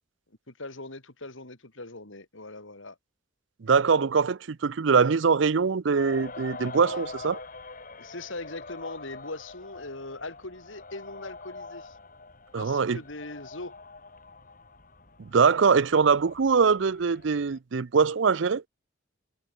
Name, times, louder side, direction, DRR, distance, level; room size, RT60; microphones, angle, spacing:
voice 1, 0.5-3.0 8.0-12.0 12.6-13.7, left 2 dB, 75° left, 4.1 m, -40 dB
voice 2, 3.6-7.4 12.5-13.0 15.3-18.6, right 5 dB, 65° right, 0.5 m, -23 dB
sound 1, 6.0-17.6, left 3 dB, 45° left, 5.0 m, -44 dB
head